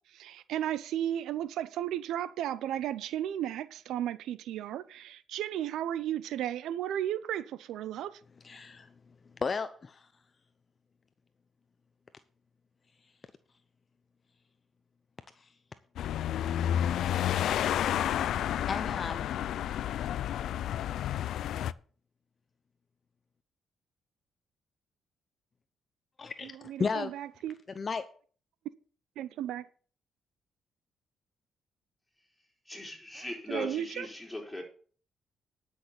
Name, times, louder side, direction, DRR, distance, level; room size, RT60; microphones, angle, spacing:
voice 1, 0.1-8.2 26.4-27.5 29.2-29.7 33.5-34.1, right 11 dB, 85° right, 0.6 m, -34 dB
voice 2, 8.4-8.9 9.4-10.0 18.7-19.3 26.2-27.1 27.8-28.0, left 5 dB, 35° left, 0.8 m, -33 dB
sound 1, 16.0-21.7, left 10 dB, 75° left, 0.4 m, -30 dB
voice 3, 32.7-34.6, left 1 dB, 10° left, 4.2 m, -39 dB
10.5 x 6.2 x 7.1 m
cardioid pair, 90°, 0 cm